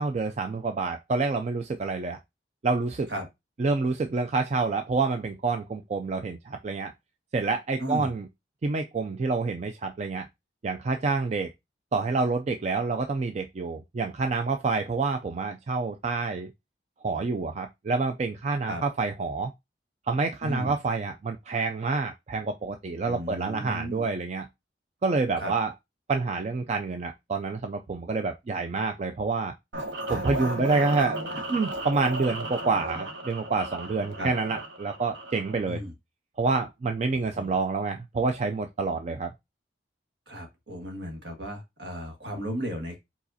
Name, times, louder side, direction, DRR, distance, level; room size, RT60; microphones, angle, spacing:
voice 1, 0.0-2.2 2.6-3.1 3.6-6.9 7.3-8.2 8.6-10.3 10.6-11.5 11.9-16.5 17.0-19.5 20.1-24.5 25.0-25.7 26.1-29.5 30.1-31.2 31.5-35.8 36.4-39.3, right 4 dB, 35° right, 0.3 m, -28 dB
voice 2, 7.8-8.1 18.6-18.8 20.4-20.7 23.0-24.0 25.4-25.5 34.2-34.3 35.6-35.9 37.3-37.5 40.3-43.0, equal, 70° right, 1.6 m, -35 dB
sound 1, 29.7-35.7, right 1 dB, 90° right, 1.1 m, -35 dB
4.9 x 4.0 x 2.7 m
head